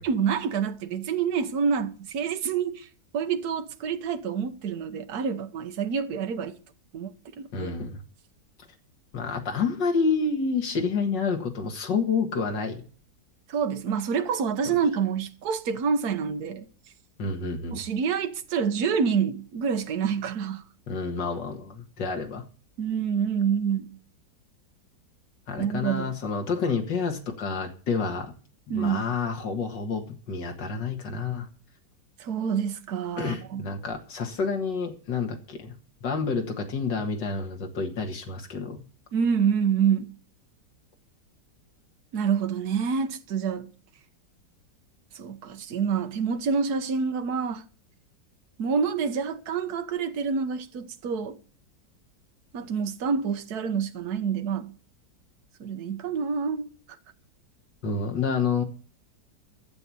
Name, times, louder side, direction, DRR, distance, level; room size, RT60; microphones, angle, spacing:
voice 1, 0.0-2.9 3.1-6.5 6.9-7.7 13.5-16.6 17.7-20.6 22.8-24.0 25.6-26.1 28.7-29.1 32.2-33.6 39.1-40.1 42.1-43.7 45.1-47.6 48.6-51.4 52.5-54.7 55.6-56.7, right 6 dB, 65° right, 1.5 m, -27 dB
voice 2, 7.5-8.0 9.1-12.8 17.2-17.8 20.9-22.5 25.5-28.3 28.7-31.5 33.2-35.7 36.0-38.8 57.8-58.6, left 5 dB, 85° left, 2.4 m, -29 dB
12.0 x 7.7 x 8.4 m
omnidirectional pair, 1.9 m